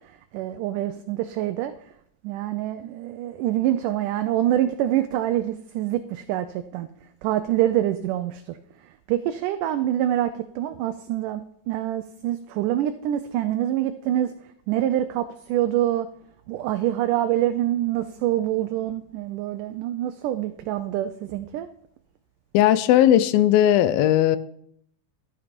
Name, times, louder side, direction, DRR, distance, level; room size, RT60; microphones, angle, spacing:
voice 1, 0.3-1.7 2.2-6.9 7.2-8.6 9.1-14.3 14.7-16.1 16.5-21.7, right 12 dB, 80° right, 9 dB, 2.0 m, -25 dB
voice 2, 22.5-24.4, left 12 dB, 85° left, 15 dB, 2.5 m, -17 dB
13.5 x 10.5 x 5.1 m, 0.70 s
omnidirectional pair, 4.1 m